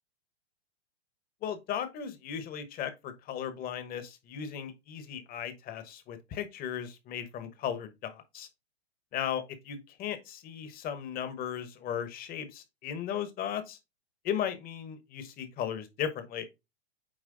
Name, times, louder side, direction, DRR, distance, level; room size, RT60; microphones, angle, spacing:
voice 1, 1.4-8.5 9.1-13.8 14.2-16.4, left 9 dB, 25° left, 1.2 m, -36 dB
8.9 x 3.0 x 3.9 m
hypercardioid pair, 120°, 33 cm